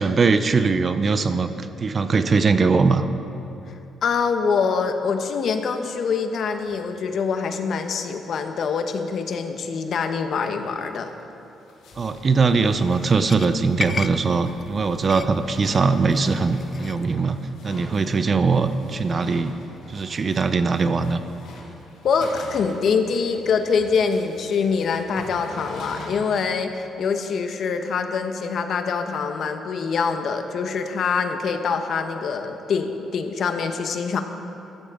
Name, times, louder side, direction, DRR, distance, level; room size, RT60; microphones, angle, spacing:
voice 1, 0.0-3.0 12.0-19.6 19.9-21.2, right 4 dB, 40° right, 10 dB, 0.6 m, -21 dB
voice 2, 4.0-11.1 22.0-34.2, left 5 dB, 60° left, 7 dB, 1.0 m, -24 dB
sound 1, 6.5-7.0 7.3-7.4 7.6-7.7 8.0-8.1 8.3-9.0 9.3-9.4 9.7-9.8 10.3-10.5 11.0-26.1, left 2 dB, 85° left, 2.4 m, -44 dB
sound 2, 11.9-17.1, left 5 dB, 40° left, 0.4 m, -37 dB
15.5 x 13.5 x 3.7 m, 2.8 s
cardioid pair, 90°, 0 cm